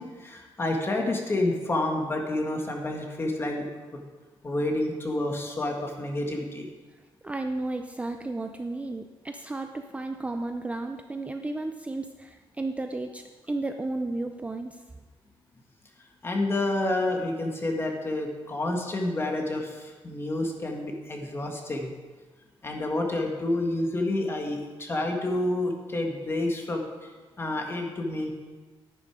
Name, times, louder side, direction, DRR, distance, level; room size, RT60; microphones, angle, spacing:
voice 1, 0.0-3.7 4.4-6.7 16.2-21.9 22.6-26.8 27.4-28.3, left 2 dB, 25° left, 2 dB, 1.9 m, -29 dB
voice 2, 7.2-14.8, right 2 dB, 15° right, 6 dB, 0.5 m, -33 dB
10.5 x 10.0 x 5.0 m, 1.3 s
cardioid pair, 125°, 9 cm